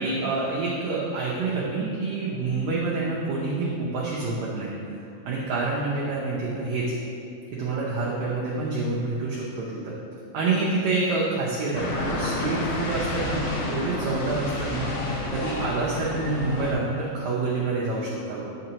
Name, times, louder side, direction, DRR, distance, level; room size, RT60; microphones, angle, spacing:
voice 1, 0.0-4.7 5.3-6.8 7.5-10.0 10.3-18.4, right 3 dB, 75° right, -5 dB, 1.7 m, -27 dB
sound 1, 11.7-16.7, left 2 dB, 75° left, 2.4 m, -30 dB
7.7 x 5.8 x 2.9 m, 2.5 s
omnidirectional pair, 3.9 m